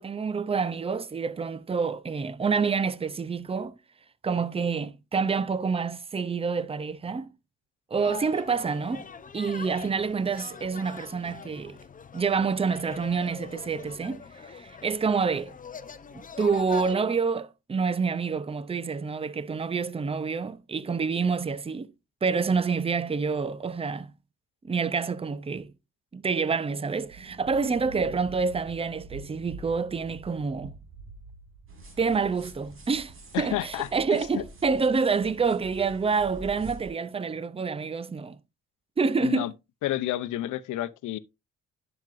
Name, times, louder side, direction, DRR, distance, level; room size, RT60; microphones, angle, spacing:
voice 1, 0.0-3.7 4.2-7.3 7.9-9.0 9.3-11.8 12.1-15.6 16.1-21.9 22.2-24.1 24.6-25.7 26.1-30.8 32.0-38.4 39.0-39.5, right 5 dB, 20° right, 0.6 m, -27 dB
sound 1, 8.0-17.0, left 6 dB, 25° left, 0.7 m, -43 dB
Thunder, 27.1-33.6, right 4 dB, 60° right, 1.7 m, -47 dB
sound 2, 31.7-36.9, right 1 dB, 45° right, 3.2 m, -47 dB
voice 2, 33.3-34.4 39.2-39.5 39.8-41.2, left 14 dB, 80° left, 0.7 m, -30 dB
10.5 x 6.0 x 2.6 m
cardioid pair, 90°, 30 cm